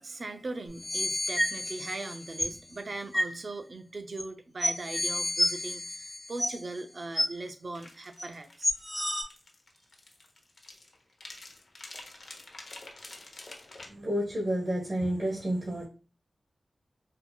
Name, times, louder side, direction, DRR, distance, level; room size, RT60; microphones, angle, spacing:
voice 1, 0.0-8.7, right 2 dB, 60° right, 0.6 m, -39 dB
sound 1, 0.7-2.6 3.1-3.3 4.2-4.3 4.6-6.8 7.2-7.3 8.2-8.3 8.6-9.2, left 1 dB, ahead, 1.2 m, -30 dB
sound 2, 7.7-13.9, left 2 dB, 55° left, 0.8 m, -48 dB
voice 2, 13.8-15.8, right 1 dB, 40° right, 1.2 m, -30 dB
4.3 x 2.6 x 2.3 m
wide cardioid pair, 65°, 0 cm